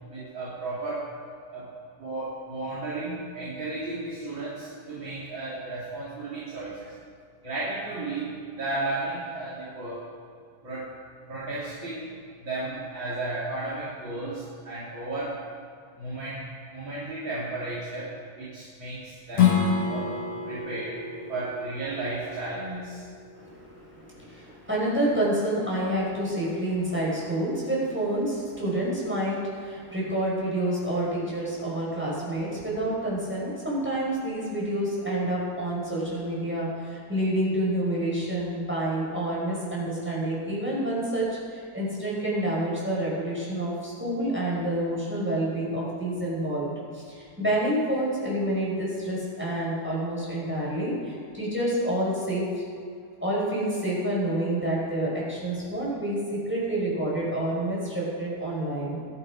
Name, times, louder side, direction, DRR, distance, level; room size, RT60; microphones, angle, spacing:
voice 1, 0.1-1.1 1.5-1.7 2.0-6.9 7.4-10.1 10.6-10.9 11.3-12.1 12.4-15.4 16.0-16.5 16.7-20.1 20.5-21.0 21.3-23.0, right 2 dB, 30° right, -8 dB, 3.6 m, -34 dB
Strum, 19.3-24.5, left 7 dB, 50° left, 2.3 m, -28 dB
voice 2, 23.4-46.7 46.9-52.4 53.2-59.0, right 1 dB, 5° right, -5 dB, 5.2 m, -28 dB
22.5 x 12.0 x 5.0 m, 2.3 s
omnidirectional pair, 4.4 m